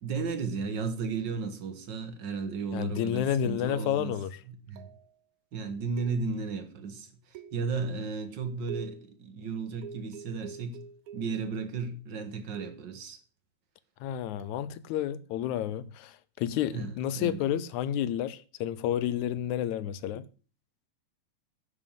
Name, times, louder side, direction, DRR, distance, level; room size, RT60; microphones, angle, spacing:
voice 1, 0.0-4.2 4.5-4.9 5.5-10.8 11.1-13.2 16.7-17.5, right 4 dB, 45° right, 1.5 m, -34 dB
voice 2, 2.7-4.4 14.0-20.3, left 10 dB, 75° left, 1.9 m, -30 dB
sound 1, 3.0-3.5 4.8-5.1 6.0-6.6 7.3-7.8 8.7-9.2 9.8-11.5 12.5-13.0 14.4-14.6, right 7 dB, 80° right, 1.2 m, -45 dB
11.0 x 6.7 x 7.5 m
omnidirectional pair, 3.8 m